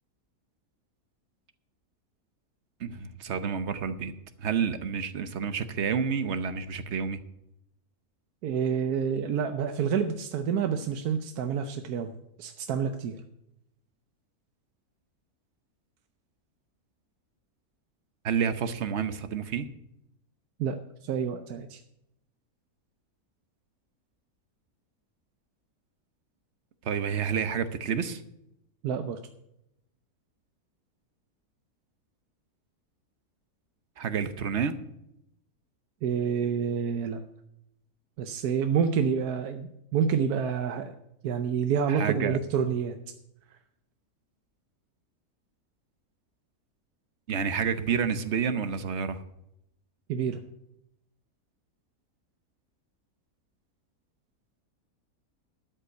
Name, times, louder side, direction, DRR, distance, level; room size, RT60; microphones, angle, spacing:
voice 1, 2.8-4.1 4.4-7.2 18.2-19.7 26.8-28.2 34.0-34.8 41.9-42.4 47.3-49.2, right 6 dB, 55° right, 11 dB, 1.0 m, -29 dB
voice 2, 8.4-12.1 12.4-13.2 20.6-21.8 28.8-29.2 36.0-37.2 38.2-41.0 41.2-43.0 50.1-50.4, right 7 dB, 85° right, 7 dB, 1.3 m, -28 dB
12.5 x 5.6 x 8.1 m, 0.81 s
omnidirectional pair, 1.6 m